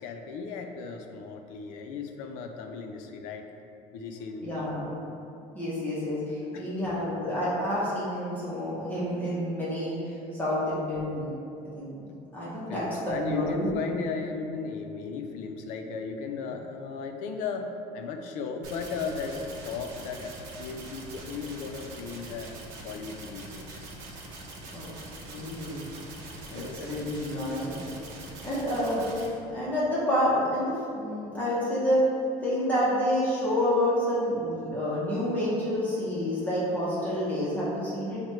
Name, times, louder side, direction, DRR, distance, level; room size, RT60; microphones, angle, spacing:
voice 1, 0.0-3.5 3.9-4.7 6.5-6.7 10.2-10.4 12.7-22.5 22.8-23.8 26.5-27.6, left 5 dB, 55° left, 4 dB, 0.4 m, -36 dB
voice 2, 4.4-4.9 5.5-11.3 11.7-12.1 12.3-13.7 24.7-24.9 25.3-25.9 26.5-27.7 28.4-29.1 29.5-32.1 32.4-38.2, equal, 10° left, -9 dB, 0.7 m, -28 dB
sound 1, 18.6-29.3, right 2 dB, 65° right, 0.7 m, -43 dB
6.1 x 2.1 x 3.0 m, 2.6 s
cardioid pair, 170°, 15 cm